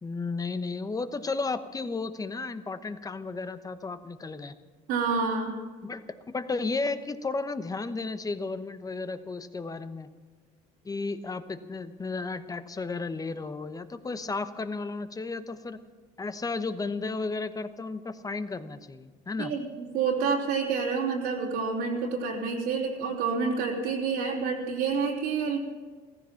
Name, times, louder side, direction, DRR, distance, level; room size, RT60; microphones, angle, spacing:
voice 1, 0.0-4.5 5.8-6.0 6.3-10.1 10.8-15.8 16.2-19.5, left 3 dB, 20° left, 11 dB, 1.0 m, -33 dB
voice 2, 4.9-5.6 19.4-25.6, right 5 dB, 80° right, -4 dB, 3.3 m, -28 dB
15.0 x 15.0 x 5.8 m, 1.4 s
supercardioid pair, 90°, 17 cm